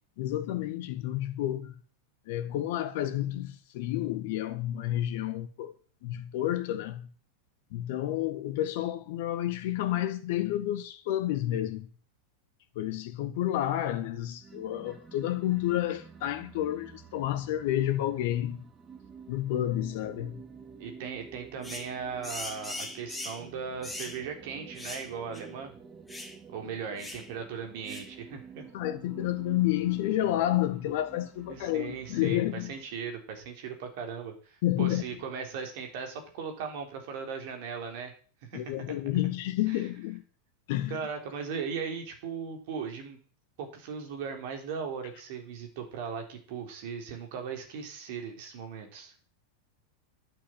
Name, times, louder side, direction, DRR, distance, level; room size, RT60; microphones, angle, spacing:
voice 1, 0.2-1.7 2.3-5.8 6.0-7.1 7.7-11.9 12.7-18.7 19.3-20.4 28.7-32.7 34.6-35.0 38.5-40.2 40.7-41.0, left 13 dB, 50° left, 1.6 m, -30 dB
sound 1, 14.4-33.0, right 5 dB, 20° right, 2.2 m, -50 dB
voice 2, 20.8-25.7 26.5-28.7 31.5-38.1 38.4-38.6 38.9-39.0 39.7-39.8 40.9-43.2 43.6-49.1, right 6 dB, 50° right, 3.8 m, -38 dB
sound 2, 21.6-21.9 22.2-23.4 23.8-24.2 24.8-25.1 25.3-25.5 26.1-26.4 27.0-27.3 27.9-28.1, left 2 dB, 5° left, 2.3 m, -40 dB
12.0 x 8.6 x 7.5 m
figure-of-eight pair, 90°, 0 cm